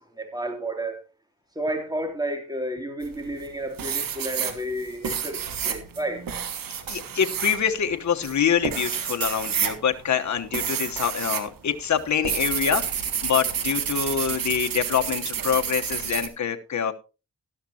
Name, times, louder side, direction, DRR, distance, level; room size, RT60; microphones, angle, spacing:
voice 1, 0.1-1.0 1.5-6.2, right 1 dB, 10° right, 3.1 m, -31 dB
sound 1, 3.0-3.5 3.8-11.5 11.8-16.3, right 8 dB, 80° right, 1.6 m, -29 dB
voice 2, 6.9-16.9, left 8 dB, 55° left, 1.2 m, -25 dB
12.5 x 12.5 x 2.9 m
cardioid pair, 70°, 33 cm